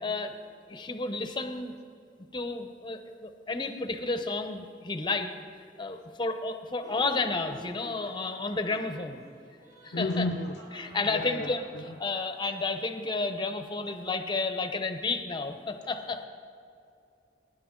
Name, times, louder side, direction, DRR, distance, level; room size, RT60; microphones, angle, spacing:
voice 1, 0.0-0.3 0.7-1.7 2.3-5.3 5.8-9.2 9.8-10.3 10.7-16.2, left 3 dB, 25° left, 8 dB, 0.8 m, -32 dB
Laughter, 6.8-13.1, equal, 45° right, 2.2 m, -52 dB
voice 2, 9.9-10.5 11.1-11.5, left 2 dB, 70° left, 6 dB, 0.6 m, -31 dB
19.5 x 10.0 x 3.8 m, 2.5 s
head